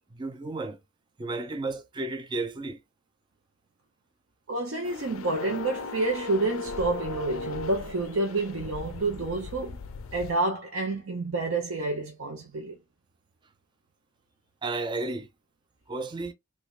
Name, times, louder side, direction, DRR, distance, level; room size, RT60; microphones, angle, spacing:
voice 1, 0.1-0.8 1.2-2.8 14.6-15.3 15.9-16.3, right 3 dB, 20° right, 0.4 m, -33 dB
voice 2, 4.5-9.8 10.1-12.7, right 2 dB, 70° right, 0.6 m, -29 dB
sound 1, 4.9-10.3, left 4 dB, 80° left, 0.4 m, -37 dB
3.2 x 3.2 x 2.4 m
head